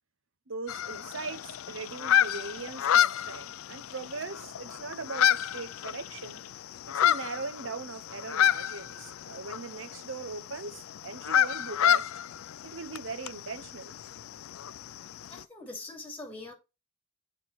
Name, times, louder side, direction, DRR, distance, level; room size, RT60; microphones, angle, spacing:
voice 1, 0.5-6.4 6.9-12.1 12.6-13.9, right 4 dB, 65° right, 0.9 m, -40 dB
sound 1, 0.7-15.4, left 10 dB, 85° left, 0.4 m, -30 dB
voice 2, 15.3-16.5, left 2 dB, 5° left, 3.0 m, -42 dB
8.3 x 4.3 x 4.3 m
head